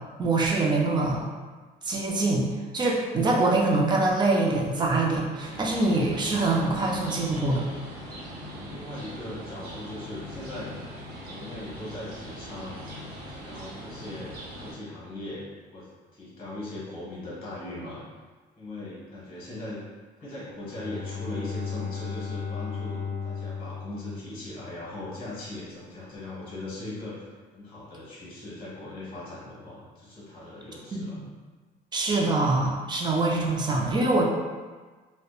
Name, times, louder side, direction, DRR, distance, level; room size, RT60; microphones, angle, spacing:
voice 1, 0.2-1.3 1.8-2.5 2.7-7.7 30.9-31.3 31.9-34.2, right 2 dB, 25° right, -2 dB, 0.4 m, -24 dB
sound 1, 5.4-14.7, equal, 60° right, 0.7 m, -41 dB
voice 2, 8.4-10.7 11.3-15.4 15.7-18.0 18.6-19.8 20.2-31.2, left 2 dB, 30° left, -8 dB, 1.0 m, -39 dB
Bowed string instrument, 20.6-25.1, left 6 dB, 50° left, 0.4 m, -35 dB
2.7 x 2.1 x 2.3 m, 1.4 s
cardioid pair, 110°, 17 cm